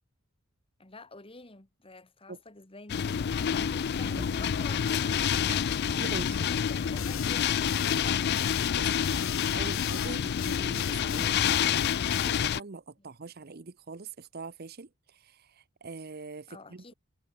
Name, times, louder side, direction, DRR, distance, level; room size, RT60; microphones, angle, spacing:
voice 1, 0.8-5.9 6.4-8.3 13.0-13.1 16.5-16.9, left 3 dB, 25° left, 1.9 m, -49 dB
sound 1, 2.9-12.6, left 8 dB, 50° left, 0.4 m, -28 dB
voice 2, 6.0-6.4 8.7-8.9 9.5-11.8 12.2-16.9, right 4 dB, 45° right, 0.8 m, -43 dB
sound 2, 7.0-12.4, left 9 dB, 75° left, 2.2 m, -39 dB
head